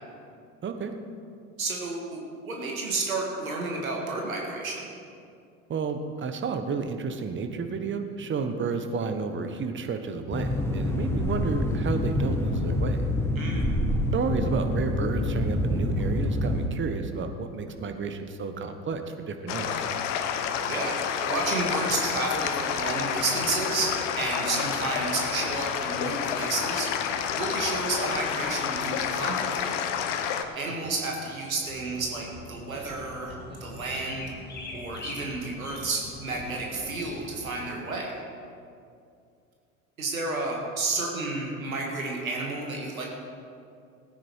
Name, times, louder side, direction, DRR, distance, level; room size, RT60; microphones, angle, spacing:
voice 1, 0.6-0.9 5.7-13.0 14.1-19.9 30.8-30.9, right 5 dB, 30° right, 7 dB, 1.3 m, -31 dB
voice 2, 1.6-4.8 13.4-13.8 20.7-29.8 30.5-33.4 33.6-34.3 34.7-38.1 40.0-43.0, right 3 dB, 85° right, 0 dB, 2.1 m, -31 dB
sound 1, 10.3-16.7, left 1 dB, 5° left, 1.4 m, -27 dB
sound 2, 19.5-30.4, left 8 dB, 60° left, 1.1 m, -29 dB
sound 3, 31.7-37.5, left 2 dB, 25° left, 2.1 m, -43 dB
16.0 x 9.5 x 4.8 m, 2.4 s
hypercardioid pair, 75°, 40 cm